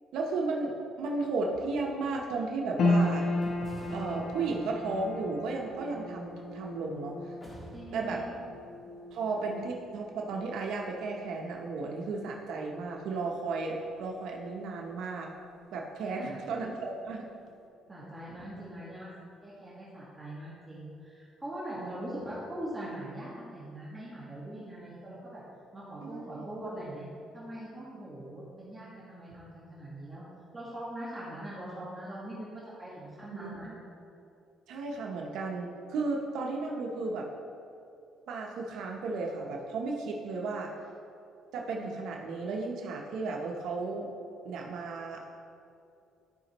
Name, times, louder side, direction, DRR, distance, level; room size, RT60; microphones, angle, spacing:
voice 1, 0.1-3.3 3.9-7.4 7.9-8.2 9.1-15.3 15.7-17.2 21.8-22.0 26.0-26.5 33.3-33.8 34.7-37.3 38.3-40.7 41.5-44.1 44.4-45.5, right 3 dB, 75° right, 0 dB, 0.8 m, -34 dB
sound 1, 1.3-2.7 3.4-6.8 7.4-8.4, equal, 15° left, 1.6 m, -51 dB
sound 2, 2.8-15.2 15.4-16.4 16.8-16.9, left 2 dB, 55° left, 0.9 m, -35 dB
voice 2, 7.7-8.5 16.1-16.4 17.9-19.1 19.4-25.4 25.7-27.0 27.3-30.2 30.5-32.5 32.8-33.7, right 1 dB, 10° right, -9 dB, 1.5 m, -42 dB
13.0 x 5.1 x 3.0 m, 2.6 s
cardioid pair, 135°, 0 cm